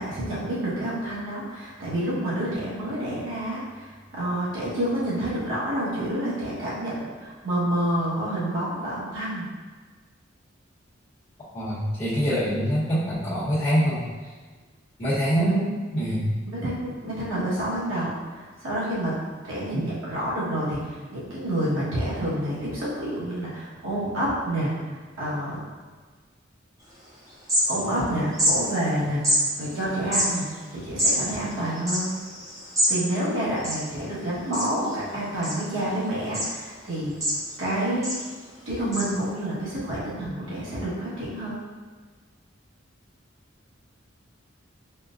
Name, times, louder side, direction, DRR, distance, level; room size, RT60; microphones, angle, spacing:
voice 1, 0.0-9.5 15.3-15.7 16.5-19.2 19.4-25.6 27.7-32.1 32.9-37.1 37.6-38.2 38.6-41.6, right 1 dB, 85° right, -9 dB, 1.2 m, -28 dB
voice 2, 11.5-14.3 15.0-15.5 15.9-16.3 19.7-19.8, equal, 30° left, -15 dB, 1.0 m, -25 dB
sound 1, 26.9-27.0 27.3-28.1 28.3-28.5 29.2-29.4 30.0-33.0 33.3-33.4 33.5-34.2 34.5-34.9 35.4-35.9 36.3-36.5 36.9-37.7 38.0-38.2 38.9-39.0, equal, 15° right, 0.8 m, -25 dB
4.4 x 2.2 x 2.5 m, 1.4 s
head